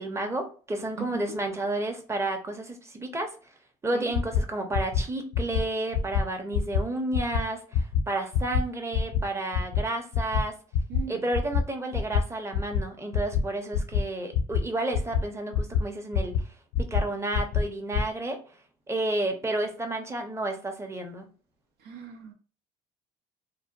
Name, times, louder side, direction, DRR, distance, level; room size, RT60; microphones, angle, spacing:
voice 1, 0.0-3.3 3.8-10.5 11.1-16.4 16.8-18.4 18.9-21.3, right 2 dB, 15° right, 4 dB, 0.7 m, -31 dB
sound 1, 4.1-4.4 4.7-5.0 5.3-5.6 5.9-6.2 6.5-6.8 7.1-7.4 7.7-8.0 8.3-8.6 8.9-9.2 9.5-9.8 10.1-10.4 10.7-11.0 11.3-11.6 11.9-12.2 12.5-12.8 13.1-13.4 13.7-14.0 14.3-14.6 14.9-15.2 15.5-15.8 16.1-16.4 16.7-17.0 17.3-17.6 17.9-18.0, left 6 dB, 75° left, 0.4 m, -24 dB
voice 2, 10.9-11.2 21.8-22.3, right 7 dB, 75° right, 3 dB, 0.6 m, -38 dB
2.8 x 2.1 x 2.6 m, 0.38 s
supercardioid pair, 70°, 18 cm